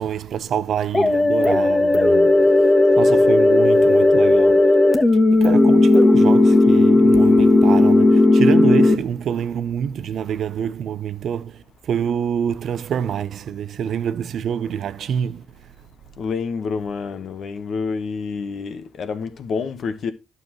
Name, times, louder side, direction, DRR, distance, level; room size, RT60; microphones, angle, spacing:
voice 1, 0.0-2.4 3.0-4.7 5.3-15.5, right 8 dB, 65° right, 0.6 m, -26 dB
sound 1, 0.9-8.9, left 2 dB, 20° left, 1.1 m, -14 dB
voice 2, 16.2-20.1, left 5 dB, 60° left, 1.1 m, -28 dB
11.0 x 6.8 x 3.0 m
cardioid pair, 90°, 0 cm